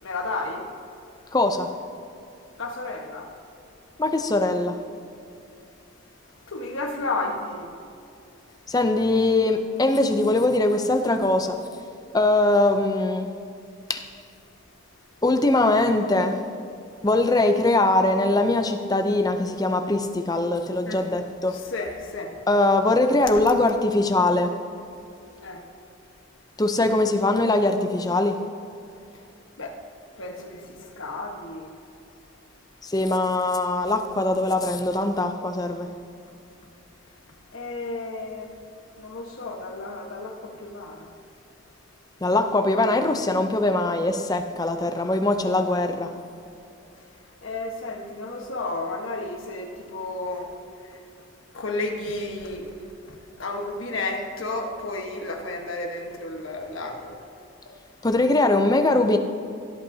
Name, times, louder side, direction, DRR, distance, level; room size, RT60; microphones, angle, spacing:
voice 1, 0.0-0.7 2.6-3.3 6.5-7.7 20.8-21.0 21.5-22.4 23.3-23.4 25.4-25.6 26.8-26.9 29.6-29.8 30.2-31.7 37.5-38.5 39.0-41.1 47.4-50.5 50.9-51.0 51.5-52.8 53.0-57.2, left 2 dB, 75° left, 1.3 m, -32 dB
voice 2, 1.3-1.7 4.0-4.8 8.7-11.6 12.1-13.3 13.9-14.0 15.2-16.4 17.0-21.5 22.5-24.5 26.6-28.4 32.8-35.9 42.2-46.1 58.0-59.2, left 2 dB, 20° left, 0.5 m, -21 dB
16.5 x 8.4 x 2.8 m
head